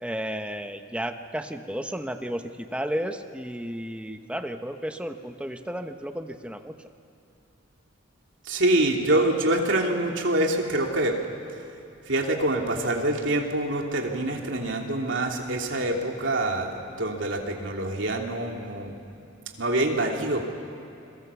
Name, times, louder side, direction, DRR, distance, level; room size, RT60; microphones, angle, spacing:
voice 1, 0.0-6.7, equal, 5° right, 7 dB, 0.9 m, -33 dB
voice 2, 8.4-11.2 12.1-18.9 19.6-20.4, right 1 dB, 75° right, 1 dB, 3.0 m, -25 dB
29.5 x 23.0 x 7.1 m, 2.8 s
head